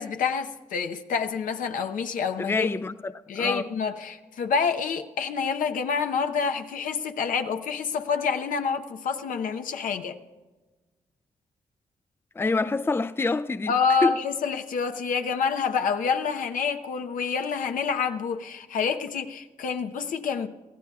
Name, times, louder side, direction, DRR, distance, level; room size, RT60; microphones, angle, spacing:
voice 1, 0.0-2.7 3.3-10.2 13.7-20.5, left 6 dB, 75° left, 0.9 m, -27 dB
voice 2, 2.4-3.6 12.4-13.7 14.0-14.2, left 3 dB, 15° left, 0.4 m, -26 dB
25.0 x 15.5 x 2.4 m
supercardioid pair, 50°, 14 cm